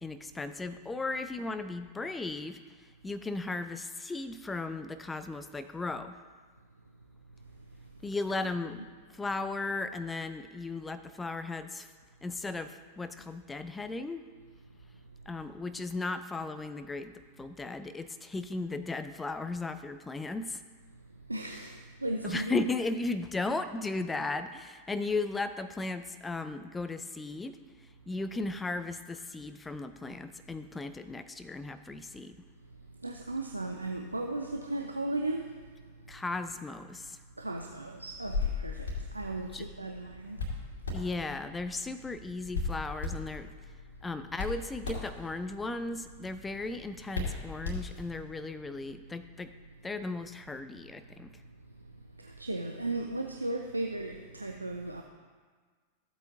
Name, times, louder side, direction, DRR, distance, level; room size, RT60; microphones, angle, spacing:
voice 1, 0.0-6.2 8.0-11.9 12.2-14.2 15.3-20.6 22.2-27.6 28.1-32.4 36.1-37.2 39.5-39.6 40.9-43.5 44.0-49.5 49.8-51.3, left 3 dB, 10° left, 11 dB, 0.5 m, -36 dB
voice 2, 21.3-22.7 33.0-35.6 37.4-40.4 52.2-55.0, right 2 dB, 85° right, 3 dB, 0.6 m, -36 dB
Hands, 38.1-48.3, left 3 dB, 75° left, 2.5 m, -38 dB
14.5 x 8.1 x 2.7 m, 1.5 s
figure-of-eight pair, 90°, 0 cm